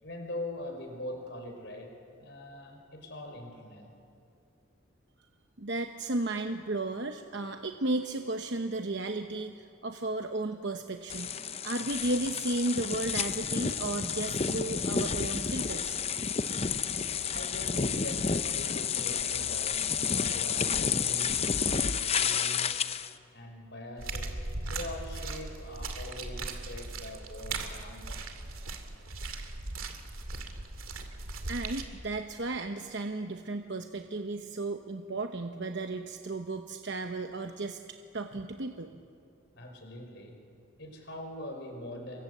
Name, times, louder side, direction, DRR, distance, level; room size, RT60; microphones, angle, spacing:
voice 1, 0.0-3.9 17.2-22.9 23.3-28.3 39.5-40.4 40.8-42.2, left 1 dB, 55° left, 3 dB, 5.1 m, -42 dB
voice 2, 5.6-11.3 11.6-16.0 31.5-37.8 38.1-38.9, right 2 dB, 55° right, 6 dB, 1.0 m, -34 dB
sound 1, 11.1-23.1, left 6 dB, 30° left, 0.6 m, -30 dB
sound 2, 24.0-31.8, right 3 dB, 90° right, 2.4 m, -38 dB
28.5 x 23.5 x 8.1 m, 2.5 s
head